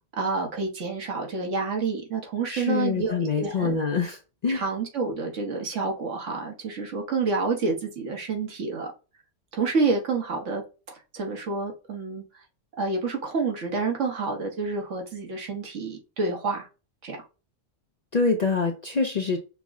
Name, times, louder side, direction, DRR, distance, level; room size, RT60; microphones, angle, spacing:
voice 1, 0.2-3.8 4.5-8.9 9.5-10.6 10.9-12.2 12.8-16.7 17.0-17.2, right 4 dB, 75° right, 1.5 m, -28 dB
voice 2, 2.5-4.6 18.1-19.4, left 4 dB, 50° left, 0.5 m, -25 dB
5.9 x 2.1 x 3.5 m
omnidirectional pair, 1.3 m